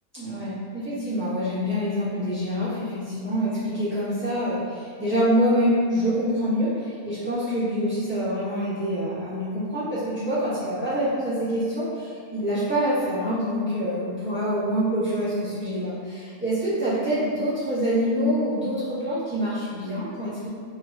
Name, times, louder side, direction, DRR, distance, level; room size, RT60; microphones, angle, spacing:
voice 1, 0.1-20.5, equal, 10° right, -15 dB, 1.3 m, -26 dB
3.3 x 3.3 x 2.6 m, 2.2 s
omnidirectional pair, 1.5 m